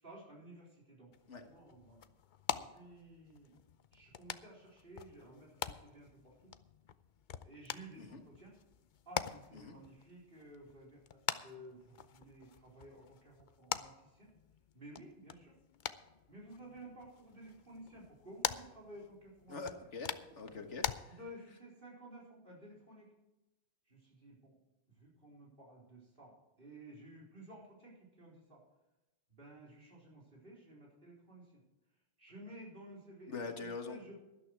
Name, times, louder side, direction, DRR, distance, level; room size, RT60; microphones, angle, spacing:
voice 1, 0.0-1.1 1.4-2.1 2.6-3.5 3.9-6.5 7.4-8.5 9.1-14.3 14.7-15.6 16.3-19.6 21.0-23.1 23.9-24.5 24.9-28.6 29.3-31.6 32.2-34.1, right 1 dB, 50° right, -3 dB, 4.3 m, -54 dB
sound 1, 1.1-21.0, left 8 dB, 50° left, 0.7 m, -45 dB
voice 2, 19.5-20.9 33.3-34.0, left 4 dB, 80° left, 5 dB, 1.8 m, -43 dB
12.5 x 12.0 x 4.7 m, 1.0 s
omnidirectional pair, 1.2 m